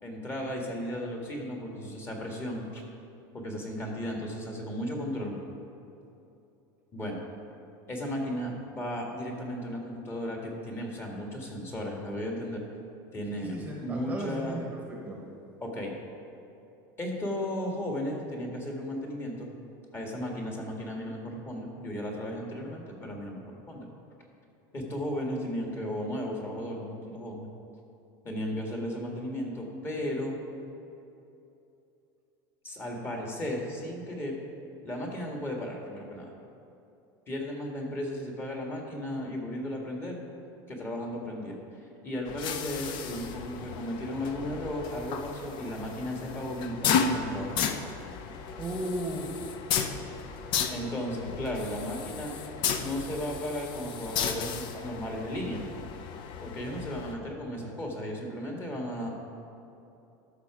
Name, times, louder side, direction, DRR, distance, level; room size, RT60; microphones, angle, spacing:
voice 1, 0.0-2.8 3.3-5.4 6.9-7.2 7.9-12.6 13.1-14.6 15.6-15.9 17.0-19.5 19.9-23.9 24.7-27.5 28.2-30.3 32.6-34.4 34.8-36.3 37.3-40.2 40.7-47.8 50.7-52.3 52.8-55.6 56.4-59.1, equal, 25° left, 0 dB, 1.7 m, -35 dB
voice 2, 13.4-15.2 48.6-49.3, right 1 dB, 15° right, -1 dB, 1.0 m, -35 dB
sound 1, 42.3-57.1, left 6 dB, 50° left, 0.7 m, -34 dB
12.5 x 5.9 x 4.8 m, 2.8 s
supercardioid pair, 140°, 10 cm